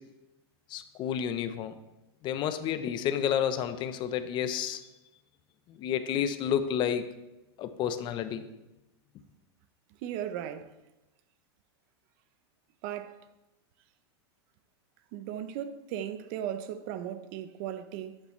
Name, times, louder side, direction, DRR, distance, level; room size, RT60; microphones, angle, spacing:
voice 1, 0.7-1.7 2.2-4.8 5.8-7.0 7.6-8.5, left 9 dB, 35° left, 0.8 m, -30 dB
voice 2, 10.0-10.7 12.8-13.2 15.1-18.2, right 10 dB, 50° right, 0.8 m, -37 dB
11.5 x 8.7 x 3.2 m
supercardioid pair, 135°, 14 cm